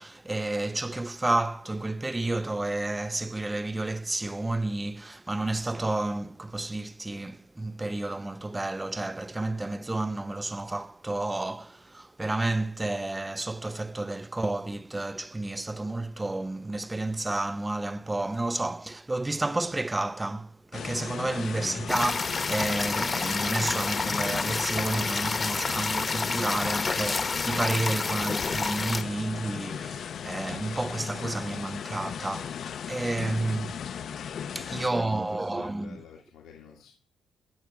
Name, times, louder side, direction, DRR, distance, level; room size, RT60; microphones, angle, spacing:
voice 1, 0.0-33.7 34.6-36.0, right 2 dB, 15° right, 0.5 m, -31 dB
sound 1, 20.7-34.9, left 8 dB, 60° left, 0.5 m, -37 dB
voice 2, 21.1-21.8 33.2-34.0 34.4-36.9, left 6 dB, 90° left, 2.1 m, -48 dB
sound 2, 21.9-29.0, left 4 dB, 35° left, 0.9 m, -29 dB
14.5 x 6.4 x 6.9 m
cardioid pair, 90°, 0 cm